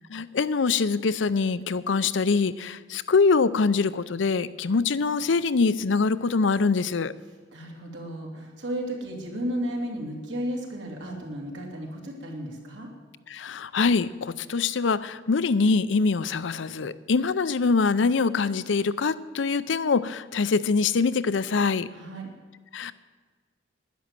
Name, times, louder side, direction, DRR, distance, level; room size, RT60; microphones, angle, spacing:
voice 1, 0.1-7.1 13.3-21.9 22.7-22.9, left 4 dB, 80° left, 16 dB, 0.5 m, -24 dB
voice 2, 7.5-12.9 21.9-22.3, equal, 75° right, 0 dB, 2.8 m, -33 dB
11.0 x 10.5 x 7.5 m, 1.5 s
head